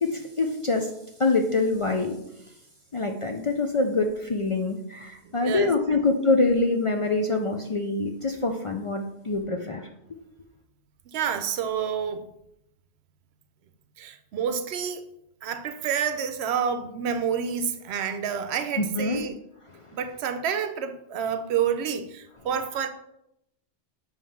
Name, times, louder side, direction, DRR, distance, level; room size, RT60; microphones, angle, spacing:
voice 1, 0.0-0.9 1.2-2.2 2.9-9.9 18.8-19.2, left 3 dB, 45° left, 0.4 m, -25 dB
voice 2, 5.2-6.0 11.1-12.3 14.0-15.0 15.4-19.4 19.9-22.9, right 7 dB, 75° right, 0.9 m, -29 dB
7.2 x 3.1 x 5.7 m
omnidirectional pair, 1.1 m